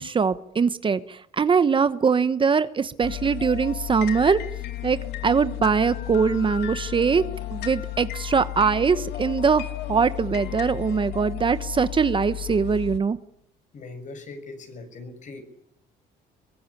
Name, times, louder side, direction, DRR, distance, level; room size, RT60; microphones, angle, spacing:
voice 1, 0.0-4.4 4.8-5.0 5.2-7.2 7.5-13.2, right 5 dB, 30° right, 13 dB, 1.1 m, -22 dB
sound 1, 3.0-13.0, left 14 dB, 80° left, 2.3 m, -33 dB
voice 2, 13.7-15.4, left 3 dB, 45° left, 8 dB, 6.5 m, -40 dB
23.0 x 21.5 x 9.8 m, 0.71 s
cardioid pair, 110°, 17 cm